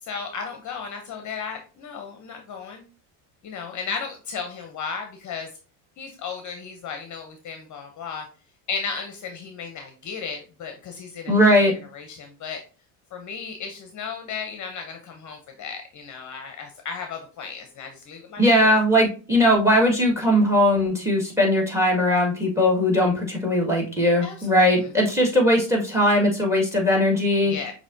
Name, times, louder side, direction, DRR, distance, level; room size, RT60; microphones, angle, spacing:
voice 1, 0.0-2.8 3.4-5.5 6.0-8.3 8.7-11.3 11.9-12.6 13.1-18.8 24.2-24.9 27.4-27.7, left 5 dB, 40° left, 5 dB, 0.9 m, -35 dB
voice 2, 11.3-11.7 18.4-27.5, equal, 5° right, 1 dB, 1.9 m, -19 dB
6.1 x 3.0 x 2.7 m, 0.35 s
supercardioid pair, 95°, 45 cm